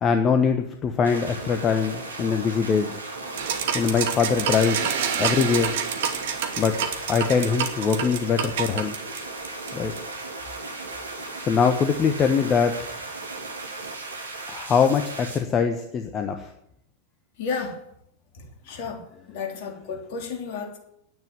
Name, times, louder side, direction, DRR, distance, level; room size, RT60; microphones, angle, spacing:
voice 1, 0.0-2.9 3.7-4.9 5.2-5.8 6.6-8.9 9.7-9.9 11.4-12.8 14.5-16.5, left 6 dB, 25° left, 6 dB, 1.1 m, -23 dB
sound 1, 1.0-15.4, right 3 dB, 75° right, 3.0 m, -36 dB
sound 2, 3.4-10.2, right 8 dB, 55° right, 1.7 m, -28 dB
voice 2, 17.4-17.8 18.3-19.0 19.3-20.8, left 5 dB, 50° left, 2 dB, 3.3 m, -32 dB
10.5 x 9.4 x 9.8 m, 0.75 s
figure-of-eight pair, 90°, 0 cm